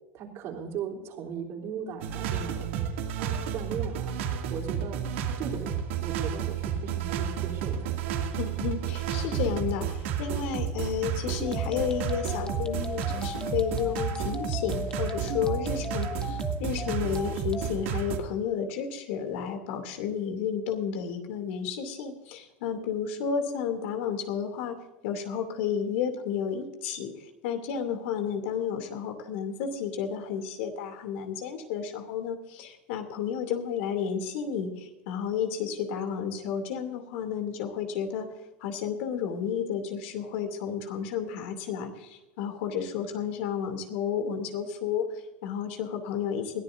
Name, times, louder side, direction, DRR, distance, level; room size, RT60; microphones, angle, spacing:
voice 1, 0.1-2.9 3.2-4.1 4.5-5.0 5.4-7.9, right 7 dB, 45° right, 1 dB, 3.4 m, -37 dB
sound 1, 2.0-18.2, right 8 dB, 85° right, 2.4 m, -31 dB
voice 2, 8.4-46.6, left 7 dB, 75° left, 5 dB, 2.8 m, -32 dB
sound 2, 11.4-17.7, left 3 dB, 15° left, 1.0 m, -38 dB
21.5 x 14.5 x 2.6 m, 0.98 s
supercardioid pair, 145°, 6 cm